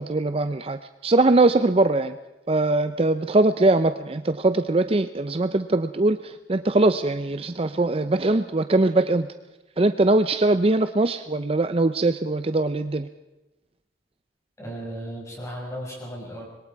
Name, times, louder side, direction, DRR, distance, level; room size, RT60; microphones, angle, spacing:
voice 1, 0.0-2.2 2.5-9.3 9.8-13.1, right 2 dB, 35° right, 10 dB, 0.6 m, -21 dB
voice 2, 14.6-16.5, equal, 15° left, -2 dB, 5.9 m, -35 dB
25.5 x 22.0 x 4.7 m, 1.0 s
head